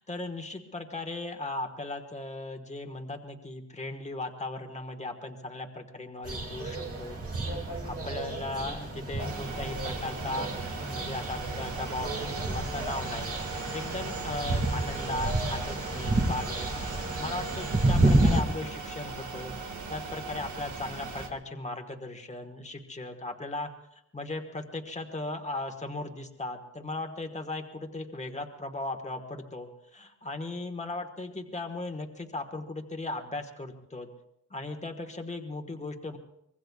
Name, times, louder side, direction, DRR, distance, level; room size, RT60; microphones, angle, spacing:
voice 1, 0.0-7.2 7.8-13.4 13.7-19.6 19.9-23.7 24.1-34.1 34.5-36.2, left 2 dB, 25° left, 4 dB, 1.4 m, -37 dB
sound 1, 6.2-18.4, right 2 dB, 50° right, 2.3 m, -30 dB
sound 2, 9.2-21.3, right 4 dB, 75° right, 1.8 m, -39 dB
24.5 x 22.0 x 2.4 m, 0.79 s
wide cardioid pair, 170°, 30 cm